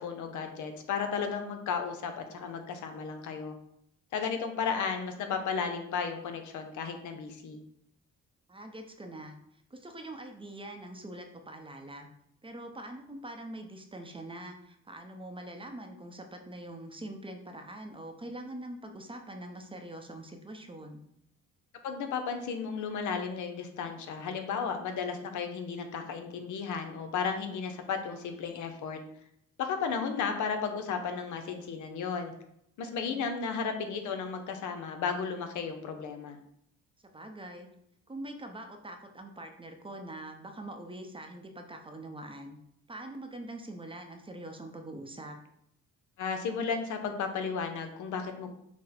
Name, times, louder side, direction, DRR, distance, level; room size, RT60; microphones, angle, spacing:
voice 1, 0.0-3.6 4.1-7.6 21.8-29.0 29.6-32.3 32.8-36.4 46.2-48.5, left 6 dB, 75° left, 6 dB, 0.7 m, -34 dB
voice 2, 8.5-9.4 9.7-12.1 12.4-21.0 32.9-33.3 37.1-37.7 38.1-42.6 42.9-45.4, right 1 dB, 15° right, 4 dB, 0.6 m, -44 dB
5.9 x 2.1 x 4.2 m, 0.74 s
cardioid pair, 90°, 30 cm